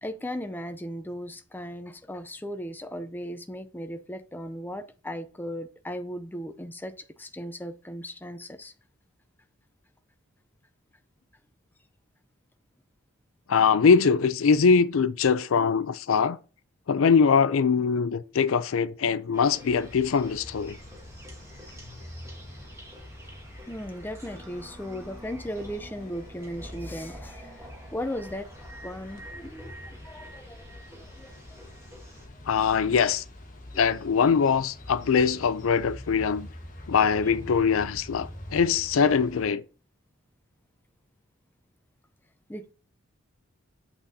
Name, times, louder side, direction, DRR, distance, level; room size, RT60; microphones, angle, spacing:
voice 1, 0.0-8.7 23.6-28.5 28.8-31.6 33.7-33.8 37.3-37.4 42.5-42.7, equal, 10° left, 0.5 m, -37 dB
voice 2, 13.5-16.4 16.9-20.7 32.5-33.2 33.8-36.5 36.9-39.6, left 6 dB, 75° left, 0.4 m, -22 dB
sound 1, 19.3-32.3, right 1 dB, 15° right, 1.2 m, -48 dB
sound 2, 19.7-39.5, left 1 dB, 40° left, 1.3 m, -45 dB
8.2 x 5.9 x 2.7 m
head